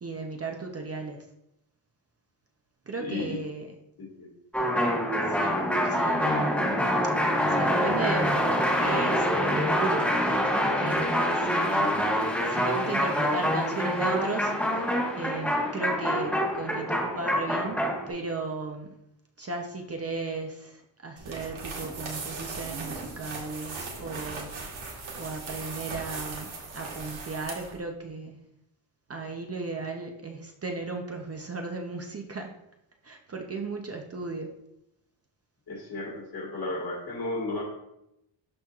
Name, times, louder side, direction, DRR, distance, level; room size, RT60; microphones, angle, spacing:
voice 1, 0.0-1.2 2.9-3.7 5.3-6.8 7.4-10.5 10.8-12.1 12.5-14.8 15.1-18.9 19.4-24.8 25.2-28.4 29.1-32.5 33.0-34.5, right 3 dB, 30° right, 2 dB, 0.6 m, -35 dB
voice 2, 3.0-3.4 4.0-4.3 35.7-37.6, left 2 dB, 50° left, -1 dB, 1.9 m, -34 dB
sound 1, 4.5-18.1, equal, 5° left, 1.0 m, -26 dB
sound 2, 21.2-27.8, right 3 dB, 85° right, 1.7 m, -38 dB
12.5 x 4.5 x 2.4 m, 0.84 s
wide cardioid pair, 170°, 46 cm